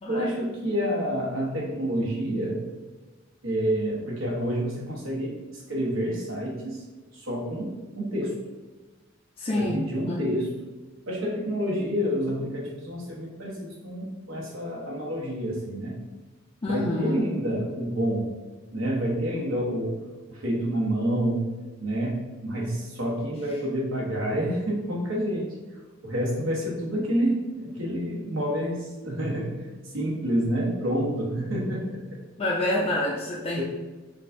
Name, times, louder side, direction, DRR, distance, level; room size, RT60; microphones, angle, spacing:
voice 1, 0.1-2.6 3.4-6.8 7.1-8.3 9.5-10.5 11.1-16.0 16.7-18.3 18.7-20.0 20.3-21.5 21.8-25.5 26.0-29.6 29.9-32.2 33.6-33.7, equal, 85° right, -3 dB, 1.1 m, -28 dB
voice 2, 9.4-10.3 16.6-17.3 32.4-33.6, left 1 dB, 30° left, -5 dB, 0.4 m, -27 dB
5.2 x 2.3 x 2.6 m, 1.2 s
head